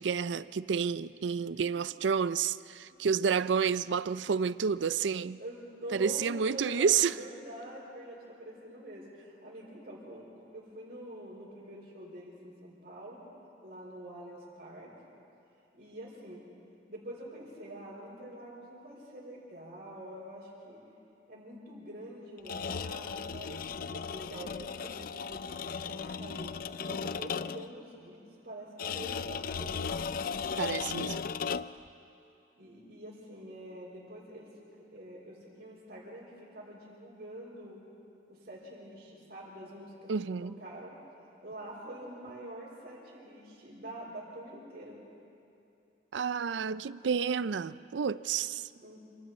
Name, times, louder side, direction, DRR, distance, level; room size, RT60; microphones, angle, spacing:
voice 1, 0.0-5.4 5.9-7.2 30.6-31.2 40.1-40.5 46.1-48.7, right 6 dB, 85° right, 0.5 m, -30 dB
voice 2, 5.4-13.2 13.6-14.9 15.7-16.4 16.9-20.8 21.3-25.4 25.9-26.5 26.8-29.7 32.6-34.5 34.9-37.8 38.3-40.1 40.4-41.0 41.4-45.0 48.8-49.0, right 1 dB, 60° right, 4.8 m, -46 dB
sound 1, 22.4-27.8 28.8-31.9, left 6 dB, 50° left, 0.4 m, -36 dB
28.0 x 26.5 x 4.3 m
head